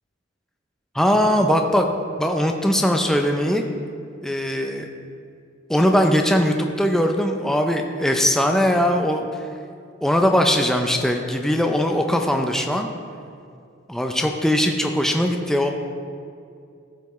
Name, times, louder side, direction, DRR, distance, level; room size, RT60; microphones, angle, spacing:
voice 1, 0.9-1.9 2.2-3.6 4.2-4.9 5.7-9.5 10.0-12.9 13.9-15.7, equal, 5° left, 3 dB, 0.4 m, -20 dB
14.5 x 5.8 x 3.1 m, 2.4 s
head